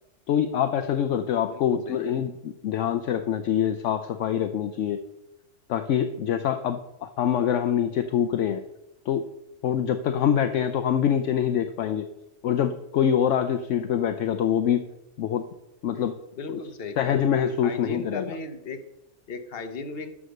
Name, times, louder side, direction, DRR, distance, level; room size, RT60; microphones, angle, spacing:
voice 1, 0.3-5.0 5.7-8.6 9.1-9.3 9.6-12.1 12.4-14.9 15.2-15.5 15.8-16.2 16.5-16.6 17.0-18.4, left 9 dB, 70° left, 9 dB, 0.9 m, -25 dB
voice 2, 1.4-2.1 16.4-17.2 17.6-18.8 19.3-20.1, left 3 dB, 50° left, 7 dB, 1.1 m, -36 dB
13.0 x 4.9 x 6.5 m, 0.90 s
omnidirectional pair, 1.4 m